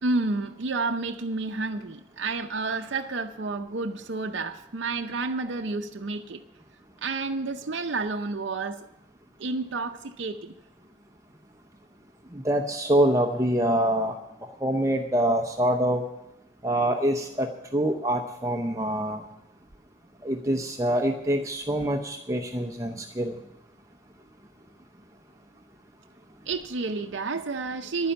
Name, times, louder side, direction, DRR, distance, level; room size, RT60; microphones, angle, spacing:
voice 1, 0.0-6.4 7.0-8.9 9.4-10.5 26.5-28.1, right 3 dB, 65° right, 0.6 m, -30 dB
voice 2, 12.3-14.2 14.6-16.0 16.6-17.5 17.7-19.2 20.2-23.4, right 1 dB, 15° right, 0.7 m, -25 dB
11.5 x 9.6 x 6.9 m
head